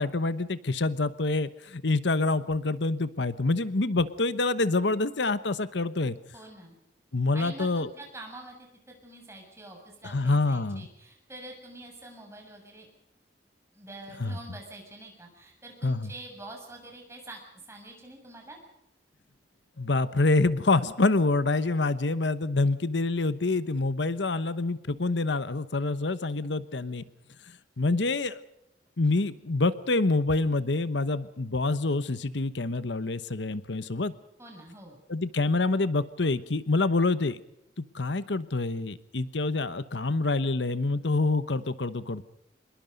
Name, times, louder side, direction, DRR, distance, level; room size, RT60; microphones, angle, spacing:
voice 1, 0.0-6.2 7.1-7.9 10.0-10.9 14.2-14.4 15.8-16.1 19.8-27.0 27.8-28.4 29.0-34.1 35.1-37.4 37.8-42.2, left 3 dB, 80° left, 14 dB, 1.0 m, -26 dB
voice 2, 6.3-6.7 7.3-12.9 13.7-18.6 34.4-35.0, right 2 dB, 15° right, 1 dB, 7.0 m, -46 dB
26.0 x 22.0 x 5.3 m, 0.79 s
head